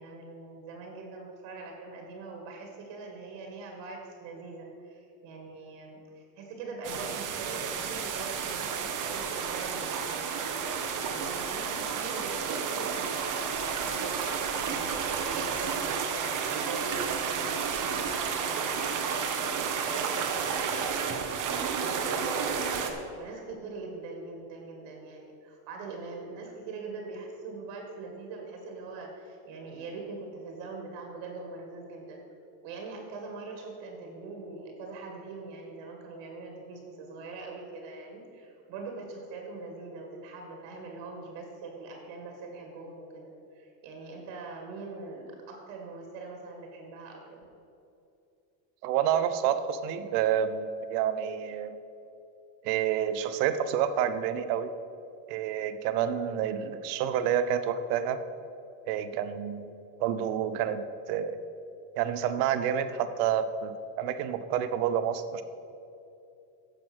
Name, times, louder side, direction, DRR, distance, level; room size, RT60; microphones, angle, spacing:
voice 1, 0.0-32.2 32.6-47.4, right 3 dB, 70° right, 1 dB, 2.0 m, -42 dB
sound 1, 6.8-22.9, right 6 dB, 40° right, 1.2 m, -31 dB
voice 2, 48.8-51.8 52.6-54.7 55.3-58.2 58.9-59.7 60.0-61.4 62.0-65.4, right 9 dB, 85° right, 11 dB, 0.9 m, -29 dB
9.7 x 6.9 x 6.1 m, 2.7 s
supercardioid pair, 120°, 46 cm